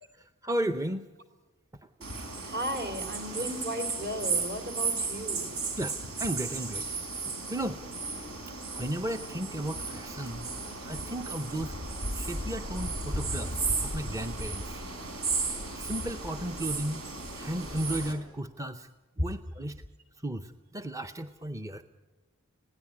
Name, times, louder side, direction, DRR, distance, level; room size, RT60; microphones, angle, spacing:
voice 1, 0.1-1.1 5.8-6.9 7.3-7.8 8.7-10.5 10.8-11.8 12.1-14.8 15.7-17.1 17.3-18.9 19.2-19.8 20.2-21.8, right 1 dB, 15° right, 8 dB, 0.6 m, -34 dB
sound 1, 2.0-18.1, right 3 dB, 75° right, 4.5 m, -34 dB
voice 2, 2.4-5.6, equal, 50° right, 6 dB, 3.3 m, -35 dB
20.5 x 17.0 x 9.7 m, 1.2 s
head